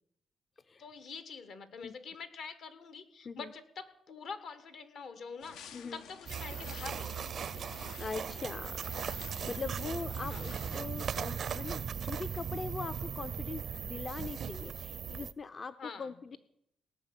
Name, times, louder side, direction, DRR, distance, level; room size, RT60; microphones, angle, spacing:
voice 1, 0.8-7.8 10.3-10.4 15.8-16.4, left 5 dB, 70° left, 12 dB, 1.6 m, -46 dB
sound 1, 5.4-10.8, left 7 dB, 90° left, 0.7 m, -51 dB
sound 2, 6.3-15.3, right 7 dB, 60° right, 0.4 m, -38 dB
voice 2, 8.0-16.4, left 4 dB, 40° left, 11 dB, 0.5 m, -41 dB
18.0 x 6.0 x 9.8 m, 0.76 s
cardioid pair, 90°, 0 cm